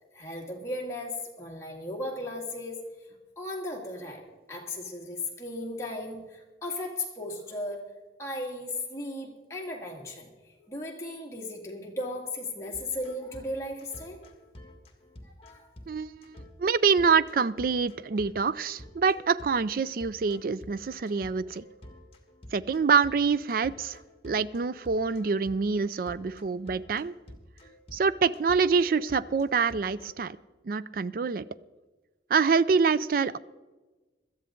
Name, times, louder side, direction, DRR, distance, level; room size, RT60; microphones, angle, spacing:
voice 1, 0.1-2.8 3.4-4.2 4.5-7.8 8.2-10.3 10.7-14.2 15.4-15.7, left 1 dB, 15° left, -1 dB, 2.1 m, -36 dB
sound 1, 12.7-30.2, left 1 dB, 30° left, 1.7 m, -50 dB
voice 2, 15.9-21.6 22.5-24.0 24.2-27.1 27.9-30.4 30.6-31.4 32.3-33.4, right 5 dB, 50° right, 18 dB, 0.4 m, -26 dB
17.0 x 13.0 x 3.8 m, 1.2 s
head